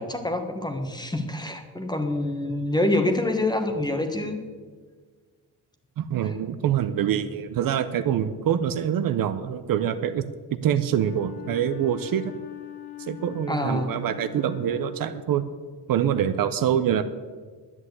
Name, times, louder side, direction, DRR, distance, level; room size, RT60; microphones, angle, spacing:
voice 1, 0.0-4.4 6.2-6.3 13.5-14.0, left 1 dB, 10° left, 6 dB, 1.2 m, -26 dB
voice 2, 6.0-10.3 10.6-12.3 13.0-15.5 15.9-17.0, right 9 dB, 55° right, 11 dB, 0.8 m, -25 dB
Wind instrument woodwind instrument, 10.9-15.6, left 13 dB, 90° left, 1.6 m, -42 dB
11.0 x 9.9 x 8.1 m, 1.5 s
cardioid pair, 160°, 40 cm